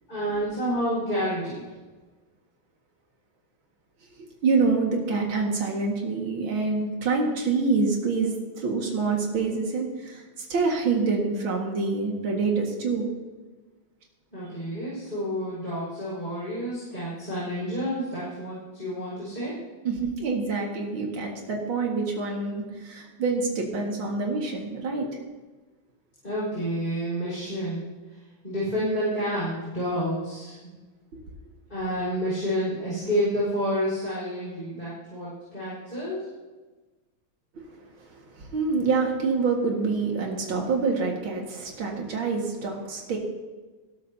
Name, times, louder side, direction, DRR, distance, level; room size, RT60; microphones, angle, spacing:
voice 1, 0.1-1.6 14.3-19.5 26.2-30.7 31.7-36.3, equal, 25° left, -9 dB, 5.4 m, -29 dB
voice 2, 4.2-13.1 19.8-25.1 31.1-31.2 37.5-37.7 38.0-43.2, right 4 dB, 80° right, 0 dB, 2.7 m, -26 dB
19.5 x 12.5 x 2.8 m, 1.3 s
omnidirectional pair, 2.2 m